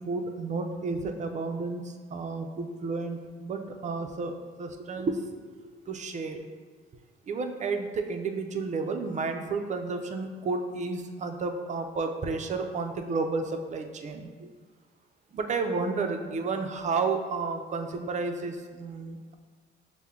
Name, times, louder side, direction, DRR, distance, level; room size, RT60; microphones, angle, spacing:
voice 1, 0.0-5.2 5.9-6.5 7.3-14.5 15.3-19.3, right 4 dB, 35° right, 5 dB, 0.4 m, -31 dB
5.5 x 2.1 x 3.6 m, 1.5 s
cardioid pair, 90°, 20 cm